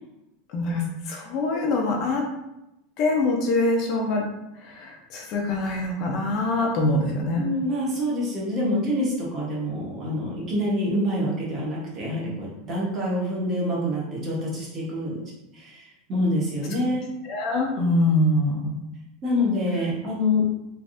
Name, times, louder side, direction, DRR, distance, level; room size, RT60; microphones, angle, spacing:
voice 1, 0.5-2.2 3.0-4.3 4.6-7.4 17.2-18.8, left 2 dB, 40° left, 0 dB, 0.5 m, -24 dB
voice 2, 7.4-15.2 15.5-17.0 19.2-20.6, left 1 dB, 30° right, -5 dB, 1.0 m, -26 dB
3.3 x 2.5 x 2.5 m, 0.90 s
supercardioid pair, 160°, 0 cm